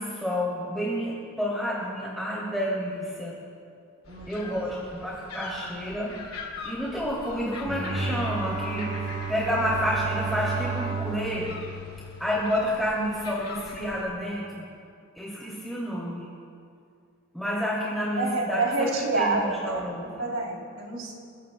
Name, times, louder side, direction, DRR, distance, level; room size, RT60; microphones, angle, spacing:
voice 1, 0.0-3.3 4.3-6.2 6.6-8.9 9.3-11.6 12.2-14.6 15.2-16.3 17.3-20.2, equal, ahead, -8 dB, 2.6 m, -29 dB
sound 1, 4.0-14.1, left 3 dB, 75° left, 2.8 m, -43 dB
voice 2, 4.1-4.6 5.4-5.6 18.2-21.1, right 3 dB, 70° right, -1 dB, 3.1 m, -28 dB
Bowed string instrument, 7.5-12.9, right 4 dB, 90° right, 2.9 m, -33 dB
30.0 x 16.5 x 2.2 m, 2.4 s
head